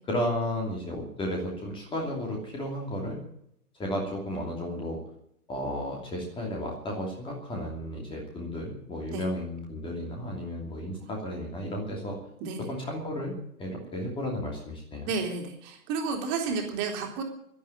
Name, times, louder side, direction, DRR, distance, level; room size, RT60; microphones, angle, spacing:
voice 1, 0.1-3.2 3.8-5.0 5.5-12.2 12.6-13.3 13.6-15.1, equal, 10° left, 0 dB, 2.8 m, -33 dB
voice 2, 15.0-17.2, right 5 dB, 25° right, 2 dB, 3.4 m, -31 dB
12.0 x 12.0 x 9.1 m, 0.73 s
figure-of-eight pair, 120°, 45 cm